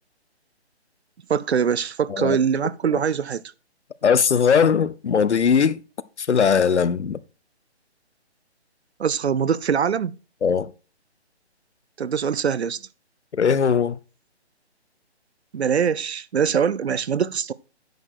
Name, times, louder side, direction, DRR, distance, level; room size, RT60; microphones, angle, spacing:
voice 1, 1.3-3.4 9.0-10.2 12.0-12.8 15.5-17.5, right 7 dB, 70° right, 0.7 m, -23 dB
voice 2, 4.0-5.8 6.2-7.2 10.4-10.7 13.3-14.0, left 6 dB, 85° left, 0.9 m, -19 dB
9.5 x 6.4 x 4.6 m
hypercardioid pair, 170°, 34 cm